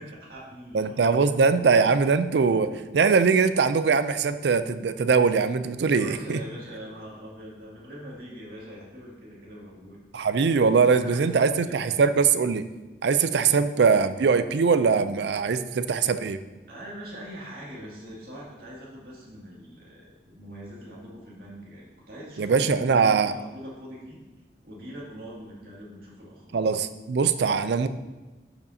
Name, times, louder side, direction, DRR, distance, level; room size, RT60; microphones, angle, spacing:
voice 1, 0.0-1.3 5.8-10.0 10.7-12.0 16.7-24.2 24.6-26.7, equal, 55° right, -5 dB, 2.3 m, -42 dB
voice 2, 0.7-6.4 10.1-12.6 13.0-16.4 22.4-23.3 26.5-27.9, right 5 dB, 75° right, 12 dB, 0.4 m, -22 dB
12.0 x 5.2 x 2.7 m, 1.2 s
head